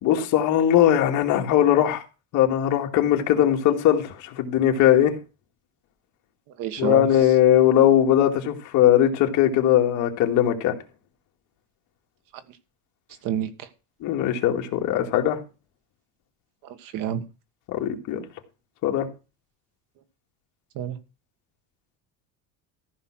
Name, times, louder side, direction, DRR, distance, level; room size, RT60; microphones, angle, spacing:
voice 1, 0.0-2.0 2.3-5.1 6.8-10.7 14.0-15.4 17.7-18.2 18.8-19.1, left 11 dB, 50° left, 2.3 m, -20 dB
voice 2, 6.5-7.3 12.3-12.6 13.2-13.7 16.6-17.2 20.7-21.0, right 10 dB, 55° right, 1.7 m, -30 dB
14.5 x 5.6 x 6.2 m
cardioid pair, 175°, 39 cm